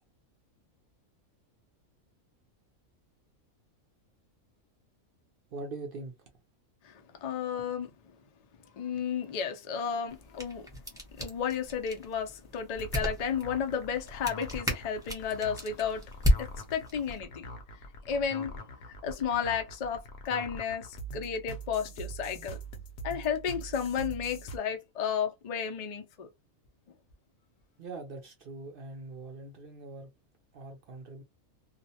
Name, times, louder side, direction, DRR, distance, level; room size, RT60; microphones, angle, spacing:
voice 1, 5.5-6.1 27.8-30.1 30.5-31.2, right 3 dB, 65° right, 0.5 m, -42 dB
voice 2, 6.8-7.9 8.7-10.7 11.2-16.1 16.4-17.5 18.1-22.6 23.0-26.3, left 7 dB, 85° left, 0.3 m, -33 dB
sound 1, 10.1-17.2, equal, 5° right, 0.7 m, -34 dB
sound 2, 12.7-24.6, right 1 dB, 65° left, 0.8 m, -43 dB
2.4 x 2.0 x 2.7 m
omnidirectional pair, 1.4 m